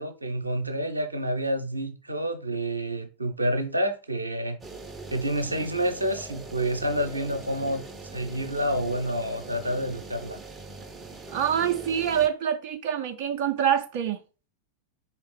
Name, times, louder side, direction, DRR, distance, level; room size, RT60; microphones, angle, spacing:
voice 1, 0.0-4.6 5.1-7.8 8.1-10.4, right 1 dB, 85° right, 0.7 m, -28 dB
sound 1, 4.6-12.3, right 3 dB, 10° right, 0.7 m, -42 dB
voice 2, 11.3-14.2, right 9 dB, 45° right, 0.4 m, -25 dB
4.5 x 3.2 x 3.2 m
figure-of-eight pair, 90°, 0 cm